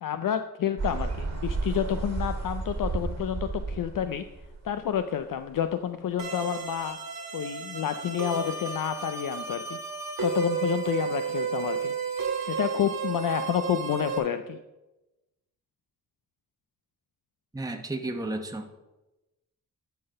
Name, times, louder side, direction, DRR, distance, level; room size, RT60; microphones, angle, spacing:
voice 1, 0.0-4.2 4.6-7.0 7.3-9.8 10.2-11.9 12.5-14.6, left 9 dB, 65° left, 9 dB, 0.5 m, -29 dB
sound 1, 0.8-5.2, right 3 dB, 45° right, 1.6 m, -32 dB
sound 2, 6.2-14.2, right 6 dB, 70° right, 1.6 m, -32 dB
voice 2, 17.5-18.8, right 2 dB, 10° right, 4 dB, 0.9 m, -33 dB
11.5 x 4.0 x 5.2 m, 1.0 s
cardioid pair, 60°, 36 cm